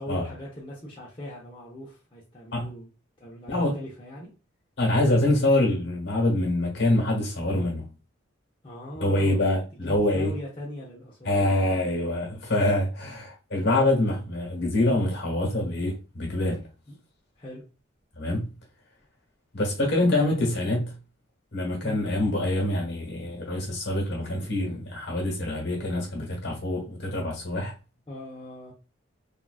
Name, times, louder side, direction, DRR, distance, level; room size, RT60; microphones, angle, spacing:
voice 1, 0.0-2.9 3.2-4.3 8.6-11.8 13.0-13.1 16.9-17.0 17.4-17.6 21.8-22.0 28.1-28.7, equal, 25° left, 0.7 m, -40 dB
voice 2, 4.8-7.9 9.0-10.3 11.2-16.6 18.1-18.5 19.5-20.9 21.5-27.7, left 1 dB, 55° left, 1.4 m, -25 dB
3.7 x 2.4 x 2.4 m
head